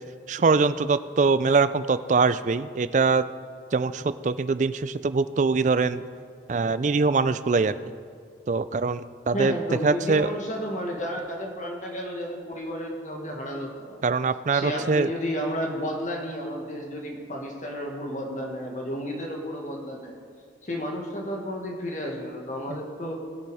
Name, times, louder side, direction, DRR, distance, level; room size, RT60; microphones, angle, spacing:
voice 1, 0.3-3.3 3.7-6.0 6.5-7.8 8.5-9.5 9.8-10.3 14.0-15.1 22.7-22.8, right 4 dB, 40° right, 14 dB, 0.4 m, -23 dB
voice 2, 9.3-14.0 14.5-20.2 20.6-23.2, equal, 40° left, 1 dB, 1.7 m, -32 dB
20.0 x 6.9 x 4.8 m, 2.2 s
head